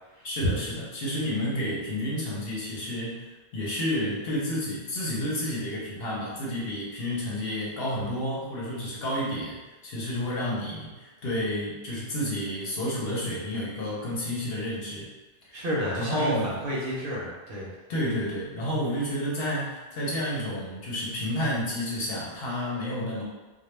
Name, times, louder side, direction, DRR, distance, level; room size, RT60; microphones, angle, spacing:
voice 1, 0.2-15.1 15.4-15.6 15.9-16.6 17.9-23.2, equal, 65° left, -5 dB, 0.8 m, -30 dB
voice 2, 15.5-17.7, equal, 60° right, -5 dB, 0.7 m, -30 dB
2.2 x 2.1 x 3.0 m, 1.2 s
omnidirectional pair, 1.2 m